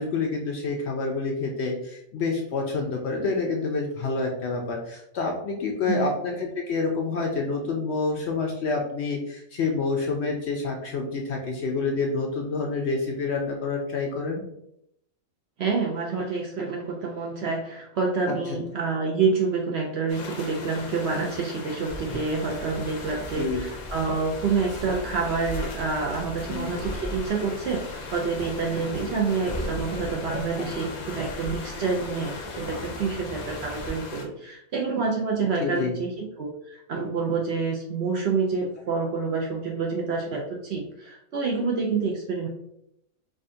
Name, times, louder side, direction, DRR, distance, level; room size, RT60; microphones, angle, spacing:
voice 1, 0.0-14.4 18.3-18.4 23.4-23.6 26.5-26.7 30.6-30.7 35.6-36.0, left 4 dB, 65° left, 1 dB, 0.7 m, -28 dB
voice 2, 15.6-42.5, right 4 dB, 65° right, -1 dB, 0.7 m, -28 dB
ocean waves between rocks, 20.1-34.2, left 3 dB, 80° left, 1.1 m, -39 dB
sound 1, 21.9-33.9, equal, 30° left, 0.5 m, -39 dB
4.9 x 2.3 x 2.5 m, 0.77 s
omnidirectional pair, 1.5 m